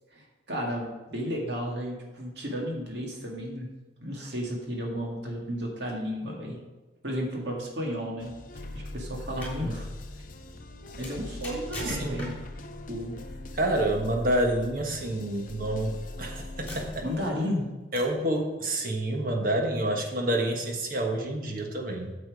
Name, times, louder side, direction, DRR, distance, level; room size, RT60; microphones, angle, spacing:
voice 1, 0.1-3.7 4.0-6.6 7.0-8.3 8.7-9.9 11.0-12.4 12.9-13.2 17.0-17.7, equal, 70° right, -1 dB, 2.1 m, -33 dB
sound 1, 8.2-17.3, left 1 dB, 45° left, 0.7 m, -41 dB
sound 2, 9.3-9.6 11.0-12.6 13.9-14.1 15.3-15.5 16.1-16.2 16.7-17.2 18.0-18.2, left 1 dB, 10° left, 3.3 m, -40 dB
voice 2, 9.4-9.8 11.8-12.2 13.5-17.0 17.9-22.2, right 1 dB, 50° right, 2 dB, 1.4 m, -28 dB
8.9 x 7.4 x 4.9 m, 1.2 s
head